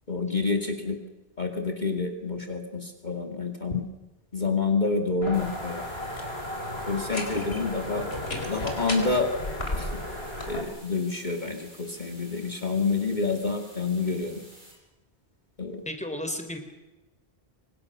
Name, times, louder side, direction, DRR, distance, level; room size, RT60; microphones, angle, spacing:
voice 1, 0.1-1.0 1.4-3.9 4.3-5.8 6.9-8.0 8.4-9.3 9.7-9.9 10.5-14.4 15.6-15.8, left 4 dB, 45° left, 3 dB, 2.6 m, -28 dB
sound 1, 5.2-10.6, left 1 dB, 65° left, 5.0 m, -33 dB
sound 2, 5.3-14.8, right 1 dB, 45° right, 6.9 m, -51 dB
voice 2, 15.9-16.6, left 1 dB, 5° left, 6 dB, 3.6 m, -33 dB
30.0 x 25.5 x 6.7 m, 1.1 s
omnidirectional pair, 1.1 m